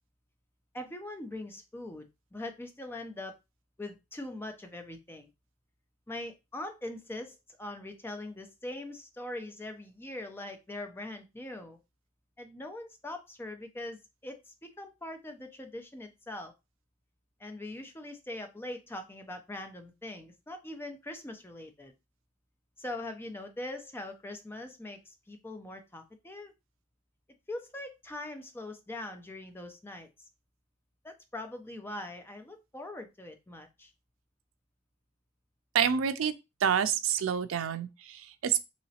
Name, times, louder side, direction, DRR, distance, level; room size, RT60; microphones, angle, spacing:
voice 1, 0.7-2.1 2.3-3.4 3.8-5.3 6.1-11.8 12.4-16.5 17.4-21.9 22.8-26.5 27.5-30.1 31.0-33.9, left 1 dB, 10° left, 0.5 m, -42 dB
voice 2, 35.7-36.3 36.6-38.7, right 8 dB, 85° right, 0.4 m, -28 dB
3.1 x 2.9 x 2.7 m
head